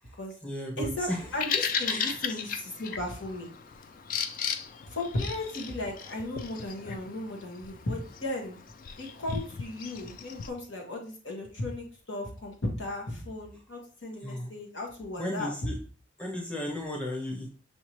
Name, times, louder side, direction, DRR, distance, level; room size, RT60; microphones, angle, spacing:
voice 1, 0.0-1.4 1.9-2.4 14.2-14.5 15.2-15.8 16.2-17.5, left 1 dB, 5° left, -1 dB, 0.7 m, -35 dB
voice 2, 0.8-3.5 4.9-8.6 9.0-15.5, left 1 dB, 85° left, 0 dB, 1.4 m, -36 dB
Bird vocalization bird call bird song, 1.1-10.5, left 7 dB, 45° left, 0.3 m, -36 dB
6.1 x 2.8 x 3.0 m, 0.40 s
head